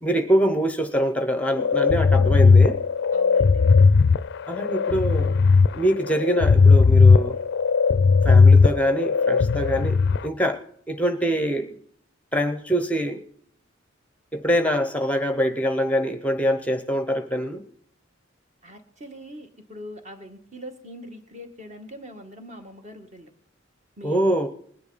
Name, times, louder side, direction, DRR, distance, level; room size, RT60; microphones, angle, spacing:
voice 1, 0.0-2.8 4.5-5.4 5.7-7.4 8.2-10.6 10.9-11.8 12.3-13.2 14.3-17.6 24.0-24.5, equal, 5° left, 9 dB, 0.8 m, -24 dB
sound 1, 1.6-10.2, left 4 dB, 60° left, 0.4 m, -17 dB
voice 2, 3.1-3.8 18.6-23.3 24.0-24.3, equal, 35° right, 5 dB, 1.9 m, -42 dB
20.0 x 10.5 x 4.1 m, 0.64 s
head